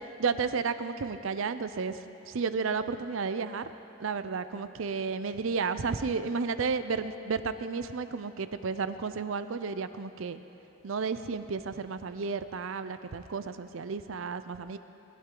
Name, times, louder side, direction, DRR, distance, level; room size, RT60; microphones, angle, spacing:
voice 1, 0.2-2.0 2.3-3.7 4.0-10.4 10.8-14.8, right 5 dB, 70° right, 12 dB, 0.5 m, -32 dB
20.0 x 11.5 x 3.8 m, 3.0 s
head